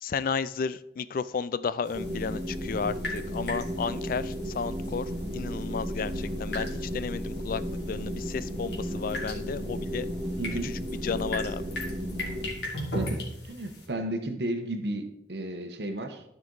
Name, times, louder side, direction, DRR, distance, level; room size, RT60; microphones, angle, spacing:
voice 1, 0.0-5.1 5.3-7.6 7.9-10.1 10.6-10.7 11.0-11.6, left 5 dB, 50° left, 15 dB, 0.3 m, -32 dB
sound 1, 1.9-13.9, left 1 dB, 75° left, 2.3 m, -40 dB
sound 2, 1.9-12.5, equal, 35° right, 1.3 m, -34 dB
voice 2, 10.4-10.8 12.7-16.2, right 1 dB, 65° right, 6 dB, 1.0 m, -33 dB
13.0 x 5.2 x 4.0 m, 0.81 s
head